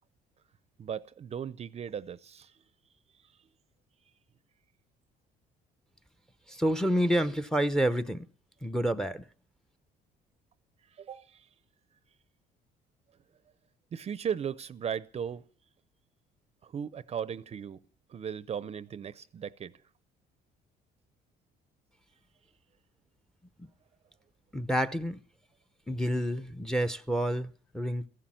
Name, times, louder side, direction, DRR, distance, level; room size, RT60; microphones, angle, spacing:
voice 1, 0.8-2.5 11.0-11.5 13.9-15.4 16.6-17.8 18.1-19.7, right 8 dB, 40° right, 0.6 m, -37 dB
voice 2, 6.5-8.2 8.6-9.2 23.6-23.7 24.5-25.2 25.9-28.1, equal, 5° left, 0.7 m, -29 dB
15.0 x 11.5 x 7.6 m
cardioid pair, 110°, 17 cm